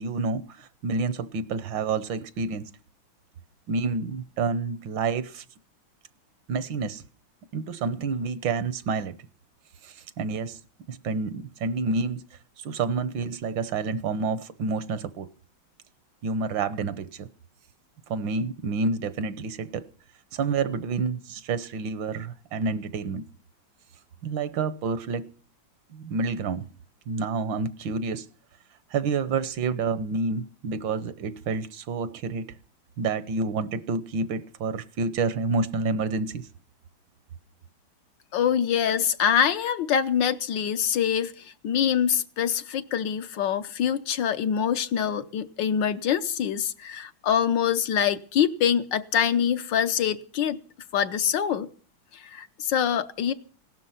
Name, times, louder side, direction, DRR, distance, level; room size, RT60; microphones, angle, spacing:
voice 1, 0.0-2.6 3.7-5.4 6.5-7.0 7.5-9.2 9.8-10.6 10.9-12.2 12.6-15.3 16.2-17.3 18.1-19.9 20.3-23.2 24.2-25.3 25.9-26.7 27.1-28.3 28.9-32.5 33.0-36.5, right 4 dB, 70° right, 1.6 m, -29 dB
voice 2, 38.3-50.6 50.9-51.7 52.1-53.3, left 8 dB, 70° left, 1.6 m, -25 dB
17.5 x 12.5 x 5.7 m
omnidirectional pair, 2.2 m